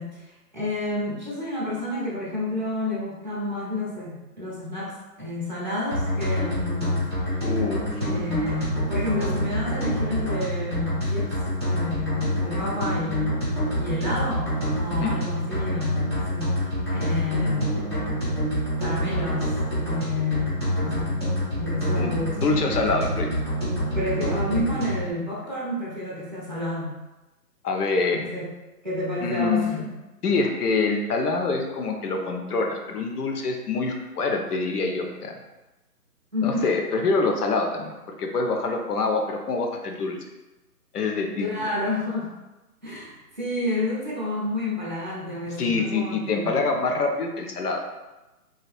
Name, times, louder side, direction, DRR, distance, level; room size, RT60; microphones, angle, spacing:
voice 1, 0.0-7.1 8.0-11.4 11.7-13.5 13.8-16.6 16.9-18.1 18.8-22.6 23.9-27.0 28.1-28.5 28.8-29.9 36.3-36.7 41.4-42.3 42.8-46.6, left 2 dB, 30° right, -7 dB, 0.5 m, -30 dB
sound 1, 5.9-25.1, equal, 15° left, 0.7 m, -27 dB
voice 2, 7.4-8.1 15.0-15.2 21.9-22.1 22.4-23.3 27.6-28.2 29.2-29.8 30.2-35.3 36.4-40.2 40.9-41.5 45.6-47.9, left 3 dB, 70° left, 3 dB, 0.7 m, -25 dB
3.1 x 2.7 x 2.3 m, 1.1 s
hypercardioid pair, 160°, 47 cm